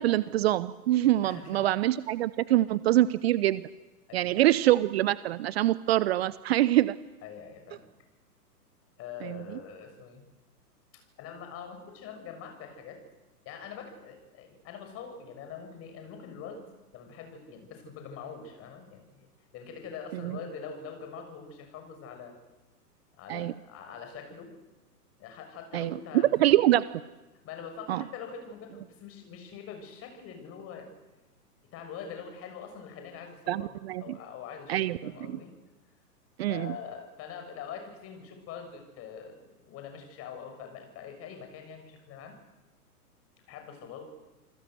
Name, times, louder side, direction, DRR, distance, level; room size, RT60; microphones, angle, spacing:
voice 1, 0.0-3.6 4.1-7.0 9.2-9.5 20.1-20.4 23.3-23.5 25.7-26.0 26.4-26.8 27.9-28.0 33.5-34.2 34.7-35.4 36.4-36.7, right 14 dB, 40° right, 17 dB, 0.8 m, -25 dB
voice 2, 1.2-1.7 4.1-4.5 7.2-7.9 9.0-10.2 10.9-13.0 13.4-22.3 23.2-24.5 25.2-26.5 27.4-30.9 31.7-33.7 34.0-35.5 36.5-42.4 43.5-44.1, left 6 dB, 30° left, 5 dB, 6.7 m, -44 dB
28.5 x 21.0 x 7.9 m, 1.1 s
figure-of-eight pair, 115°, 47 cm